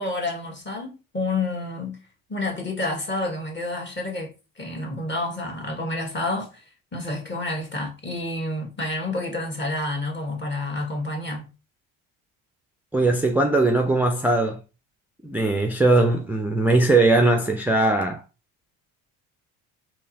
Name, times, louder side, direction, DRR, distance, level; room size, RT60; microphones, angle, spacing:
voice 1, 0.0-2.0 2.3-6.6 6.9-11.5, left 2 dB, 25° left, 1.4 m, -29 dB
voice 2, 12.9-14.6 15.2-18.2, right 2 dB, 5° right, 0.4 m, -20 dB
3.7 x 2.9 x 2.8 m
supercardioid pair, 80°, 40 cm